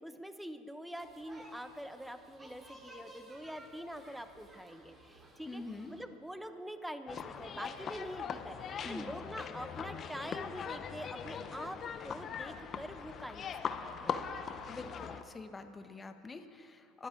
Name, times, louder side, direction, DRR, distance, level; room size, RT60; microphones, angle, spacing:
voice 1, 0.0-5.6 5.9-13.5 13.8-14.3, equal, 5° right, 9 dB, 1.1 m, -45 dB
sound 1, 1.0-6.0, equal, 25° right, 4.1 m, -56 dB
voice 2, 5.4-5.9 8.8-9.2 14.7-17.1, left 3 dB, 20° left, 7 dB, 1.2 m, -46 dB
sound 2, 7.1-15.2, left 7 dB, 40° left, 0.9 m, -41 dB
24.5 x 12.0 x 4.0 m, 2.7 s
hypercardioid pair, 90°, 0 cm